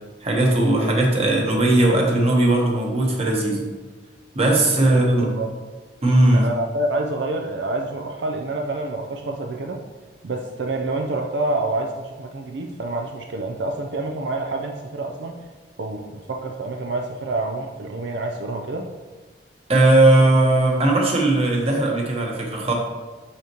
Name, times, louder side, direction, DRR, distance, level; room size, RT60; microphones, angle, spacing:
voice 1, 0.2-3.6 4.3-5.3 6.0-6.5 19.7-22.7, right 2 dB, 35° right, 0 dB, 1.1 m, -18 dB
voice 2, 4.8-5.5 6.3-9.8 10.2-15.4 15.8-18.9, right 2 dB, 80° right, 2 dB, 0.5 m, -27 dB
6.5 x 5.8 x 3.0 m, 1.3 s
head